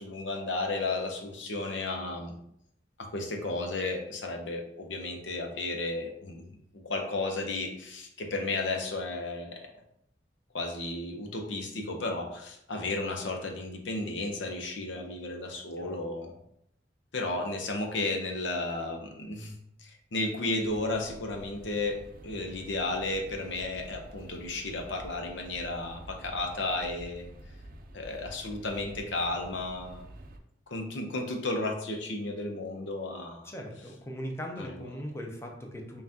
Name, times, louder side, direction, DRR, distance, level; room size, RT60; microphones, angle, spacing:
voice 1, 0.0-2.4 3.0-6.4 6.7-9.6 10.5-16.4 17.1-22.0 22.2-27.3 27.9-30.0 30.7-33.5 34.6-34.8, left 2 dB, 90° left, 3 dB, 0.7 m, -33 dB
sound 1, 20.6-30.4, right 1 dB, 50° right, 0.4 m, -49 dB
voice 2, 33.4-36.0, equal, 15° left, 2 dB, 0.5 m, -39 dB
5.5 x 2.4 x 2.7 m, 0.74 s
head